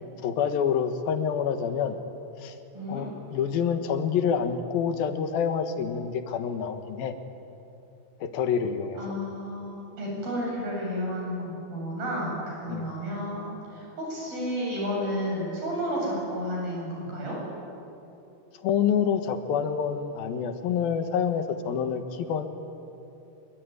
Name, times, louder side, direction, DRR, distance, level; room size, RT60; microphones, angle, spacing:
voice 1, 0.2-2.0 2.4-2.6 2.9-7.1 8.2-9.0 12.7-12.9 18.6-22.5, left 7 dB, 80° left, 8 dB, 3.2 m, -27 dB
voice 2, 9.0-17.4, equal, 80° right, -3 dB, 10.0 m, -32 dB
25.5 x 23.0 x 9.7 m, 2.8 s
omnidirectional pair, 4.2 m